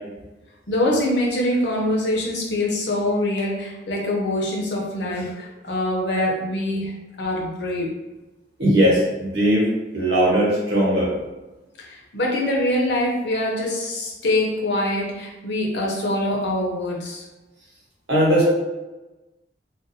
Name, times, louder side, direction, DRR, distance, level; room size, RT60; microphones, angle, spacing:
voice 1, 0.7-6.9 7.2-7.9 11.8-17.2, left 1 dB, 70° left, -2 dB, 0.7 m, -24 dB
voice 2, 8.6-9.7 9.9-11.1 18.1-18.5, equal, 80° right, -6 dB, 1.2 m, -18 dB
2.5 x 2.2 x 2.7 m, 1.1 s
head